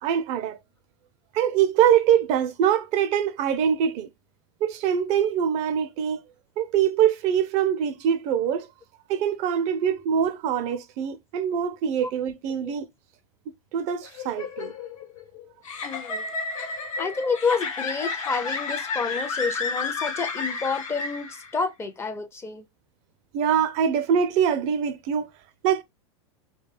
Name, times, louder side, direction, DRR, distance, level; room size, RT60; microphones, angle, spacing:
voice 1, 0.0-0.6 1.3-4.1 4.6-6.2 6.6-8.7 9.1-12.8 13.7-14.7 23.3-25.3 25.6-25.8, right 8 dB, 45° right, 0.4 m, -23 dB
sound 1, 14.0-21.6, left 4 dB, 85° left, 0.9 m, -32 dB
voice 2, 15.8-16.3 17.0-22.7, left 5 dB, 15° left, 0.4 m, -29 dB
2.3 x 2.2 x 3.1 m
hypercardioid pair, 110°, 16 cm